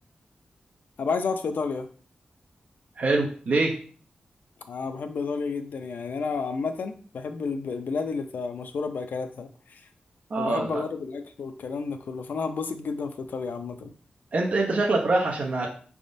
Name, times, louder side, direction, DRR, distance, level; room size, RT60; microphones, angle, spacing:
voice 1, 1.0-1.9 4.7-9.8 10.4-13.9, left 4 dB, 75° left, 7 dB, 0.5 m, -31 dB
voice 2, 3.0-3.8 10.3-10.8 14.3-15.7, right 2 dB, 55° right, -1 dB, 0.6 m, -24 dB
4.9 x 3.5 x 2.6 m, 0.43 s
wide cardioid pair, 140°, 3 cm